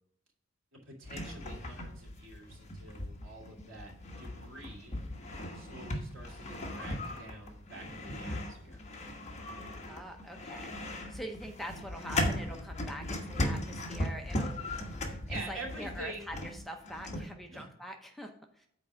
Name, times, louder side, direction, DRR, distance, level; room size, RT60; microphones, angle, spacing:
voice 1, 0.7-3.9 4.2-4.9 5.5-8.8 15.3-16.3 17.2-17.7, right 2 dB, 75° right, -1 dB, 2.6 m, -46 dB
sound 1, 1.0-17.3, left 1 dB, 35° left, 1.3 m, -38 dB
voice 2, 9.8-14.6 15.0-18.7, equal, ahead, 3 dB, 0.7 m, -44 dB
7.3 x 4.6 x 6.3 m, 0.74 s
head